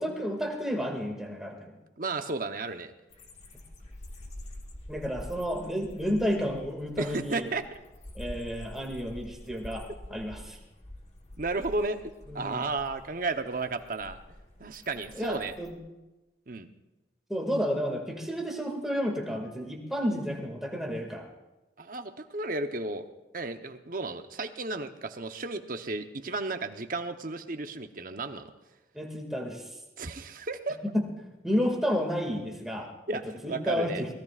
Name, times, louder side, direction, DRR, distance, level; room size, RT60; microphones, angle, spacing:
voice 1, 0.0-1.7 4.9-7.5 8.1-10.6 12.3-12.7 15.1-15.7 17.3-21.3 28.9-29.7 30.8-31.1 31.4-32.9 33.4-34.1, equal, ahead, 0 dB, 2.2 m, -31 dB
voice 2, 2.0-2.9 7.0-7.8 11.4-14.2 14.6-15.5 16.5-16.7 21.8-23.0 23.3-28.5 30.0-30.8 33.1-34.0, right 3 dB, 50° right, 7 dB, 0.9 m, -33 dB
sound 1, 3.1-15.7, left 1 dB, 40° left, 1.4 m, -46 dB
24.5 x 19.0 x 2.5 m, 1.1 s
head